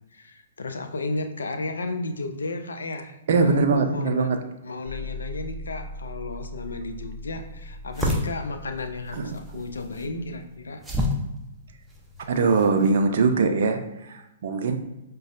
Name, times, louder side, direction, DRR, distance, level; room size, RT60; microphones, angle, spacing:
voice 1, 0.1-4.3 4.6-10.8, left 2 dB, 80° left, 7 dB, 0.4 m, -33 dB
voice 2, 3.3-4.4 9.1-9.4 12.3-14.8, right 4 dB, 60° right, 6 dB, 0.4 m, -22 dB
sound 1, 4.9-10.4, left 1 dB, 50° left, 1.3 m, -40 dB
sound 2, 6.7-13.0, left 1 dB, 5° right, 0.5 m, -32 dB
5.0 x 2.2 x 2.5 m, 0.90 s
hypercardioid pair, 120°, 0 cm